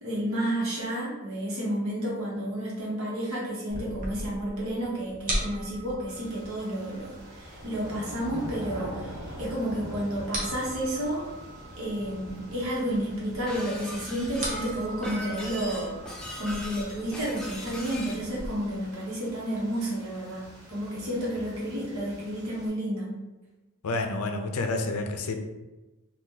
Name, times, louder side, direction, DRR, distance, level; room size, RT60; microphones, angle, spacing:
voice 1, 0.0-11.2 11.8-15.9 16.4-23.1, right 1 dB, 65° right, -4 dB, 1.1 m, -31 dB
sound 1, 3.7-18.5, right 1 dB, 35° right, 0.7 m, -40 dB
sound 2, 6.1-22.7, equal, 85° right, 1.2 m, -44 dB
Shatter, 13.5-18.2, left 1 dB, 5° left, 0.5 m, -40 dB
voice 2, 23.8-25.3, left 2 dB, 80° left, 5 dB, 0.5 m, -29 dB
2.8 x 2.4 x 3.7 m, 1.1 s
head